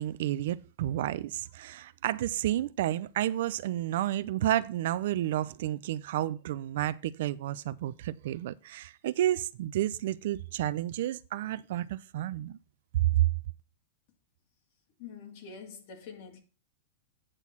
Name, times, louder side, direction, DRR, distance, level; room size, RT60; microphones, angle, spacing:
voice 1, 0.0-12.6 12.9-13.3, right 13 dB, 65° right, 0.6 m, -30 dB
voice 2, 15.0-16.4, left 6 dB, 50° left, 2.5 m, -45 dB
9.1 x 6.3 x 5.6 m
supercardioid pair, 160°, 0 cm